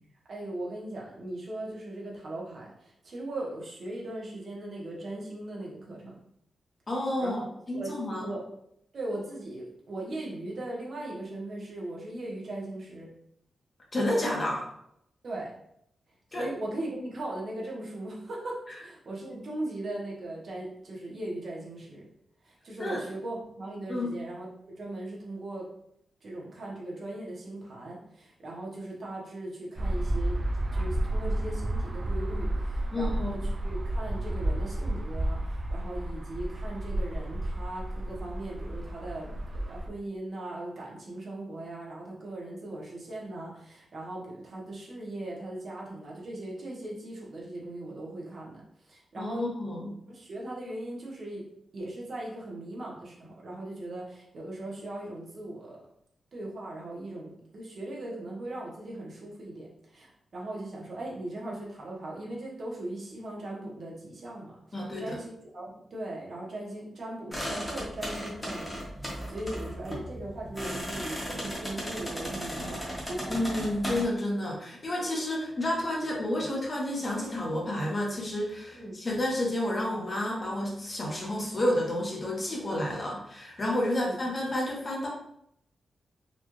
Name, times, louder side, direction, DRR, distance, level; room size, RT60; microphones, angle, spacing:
voice 1, 0.3-6.1 7.2-7.4 7.7-8.4 8.9-13.1 15.2-15.5 16.3-22.0 22.4-25.6 26.2-30.4 30.7-48.6 48.9-49.4 50.1-51.5 51.7-55.8 56.3-64.6 65.0-73.3 73.6-73.7 78.7-78.9 83.9-84.2, right 1 dB, 55° right, -4 dB, 1.1 m, -39 dB
voice 2, 6.9-8.3 13.9-14.7 16.3-16.5 22.8-23.0 23.9-24.2 32.9-33.4 49.2-50.0 64.7-65.2 73.3-85.1, left 1 dB, 35° left, -2 dB, 1.0 m, -30 dB
sound 1, 29.8-39.9, right 1 dB, 40° right, 0.4 m, -31 dB
sound 2, 67.3-74.0, equal, 10° left, 1.2 m, -36 dB
4.1 x 2.4 x 3.1 m, 0.75 s
wide cardioid pair, 115°, 0 cm